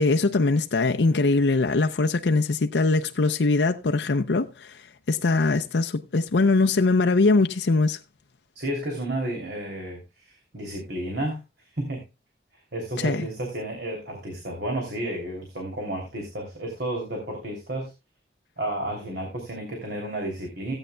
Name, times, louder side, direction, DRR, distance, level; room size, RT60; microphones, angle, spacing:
voice 1, 0.0-4.8 5.1-8.0 13.0-13.3, left 3 dB, 80° left, 0.6 m, -22 dB
voice 2, 8.5-12.0 12.5-17.9 18.6-20.7, right 1 dB, 65° right, 3.0 m, -32 dB
17.0 x 8.9 x 2.2 m
head